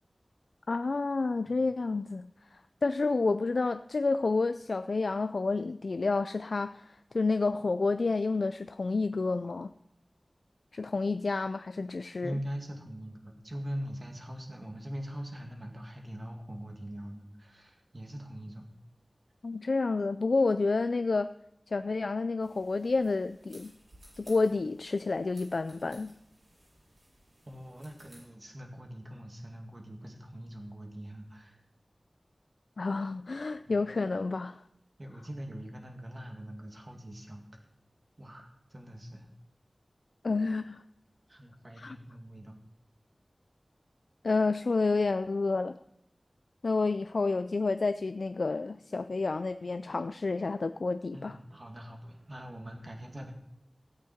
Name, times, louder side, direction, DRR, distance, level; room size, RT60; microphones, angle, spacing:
voice 1, 0.7-9.7 10.7-12.3 19.4-21.3 21.7-23.7 24.2-26.1 32.8-34.6 40.2-40.8 41.8-42.0 44.2-45.8 46.6-51.3, left 3 dB, 85° left, 10 dB, 0.3 m, -29 dB
voice 2, 12.2-18.7 27.5-31.6 33.7-33.8 35.0-37.5 38.2-39.3 41.3-42.6 51.1-53.3, equal, 40° right, 2 dB, 2.1 m, -42 dB
sound 1, 22.4-28.2, right 1 dB, 75° right, 4.7 m, -59 dB
13.5 x 8.5 x 4.4 m, 0.77 s
wide cardioid pair, 60°, 0 cm